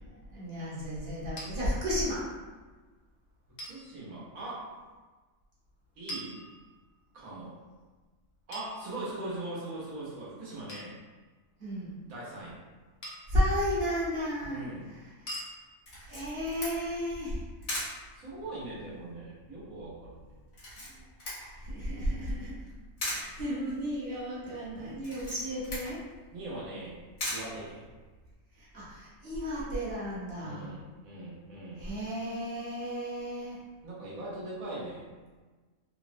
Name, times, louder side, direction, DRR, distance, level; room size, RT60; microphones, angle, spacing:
voice 1, 0.1-2.3 11.6-12.0 13.3-15.4 16.1-17.4 20.9-21.0 21.6-22.5 23.1-26.0 28.5-30.7 31.8-33.6, equal, 55° right, -7 dB, 0.9 m, -33 dB
sound 1, 1.4-1.5 3.6-3.8 6.1-7.0 8.5-9.4 10.7-11.0 13.0-13.4 15.3-15.5, equal, 50° left, 0.5 m, -42 dB
voice 2, 3.7-4.7 6.0-6.4 7.1-7.6 8.5-11.0 12.0-12.6 14.5-14.9 18.1-20.2 26.3-27.0 27.3-27.8 30.4-31.8 33.8-35.1, right 2 dB, 90° right, -6 dB, 1.4 m, -40 dB
Camera, 15.8-28.3, left 1 dB, 80° left, 1.5 m, -42 dB
3.5 x 2.0 x 2.5 m, 1.3 s
omnidirectional pair, 1.4 m